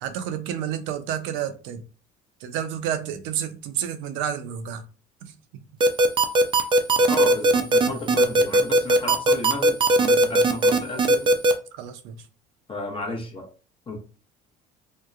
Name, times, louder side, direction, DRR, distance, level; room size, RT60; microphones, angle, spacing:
voice 1, 0.0-1.8 2.4-4.8 5.2-5.3 11.8-12.2, right 9 dB, 85° right, 0.5 m, -30 dB
sound 1, 5.8-11.5, right 2 dB, 25° right, 0.4 m, -17 dB
voice 2, 7.1-11.3 12.7-13.5 13.9-14.0, left 2 dB, 25° left, 0.7 m, -33 dB
2.8 x 2.2 x 2.3 m
cardioid pair, 105°, 20 cm